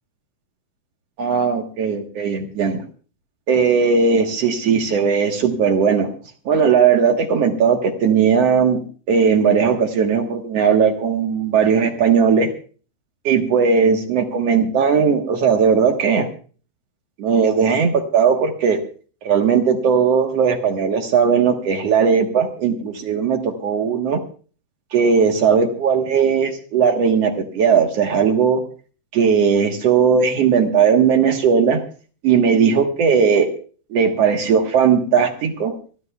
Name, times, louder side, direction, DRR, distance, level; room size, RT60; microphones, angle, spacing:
voice 1, 1.2-2.8 3.5-6.1 6.4-8.8 9.1-12.5 13.2-16.3 17.2-18.8 19.2-24.2 24.9-28.6 29.1-31.8 32.2-33.5 33.9-35.7, right 6 dB, 65° right, 3 dB, 1.6 m, -17 dB
27.0 x 15.0 x 2.3 m, 0.40 s
omnidirectional pair, 4.7 m